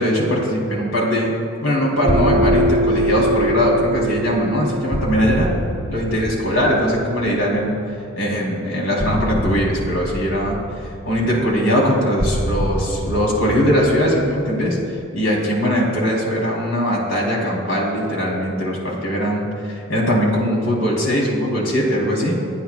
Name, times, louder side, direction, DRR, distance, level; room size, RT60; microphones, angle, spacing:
voice 1, 0.0-1.3 1.6-5.5 5.9-7.8 8.2-10.6 11.1-14.8 15.1-22.4, equal, 80° left, -3 dB, 3.7 m, -20 dB
sound 1, 2.0-10.5, equal, 75° right, 0.5 m, -26 dB
sound 2, 2.1-7.8 9.0-15.3, equal, 20° left, 1.0 m, -27 dB
28.0 x 10.0 x 2.4 m, 2.4 s
head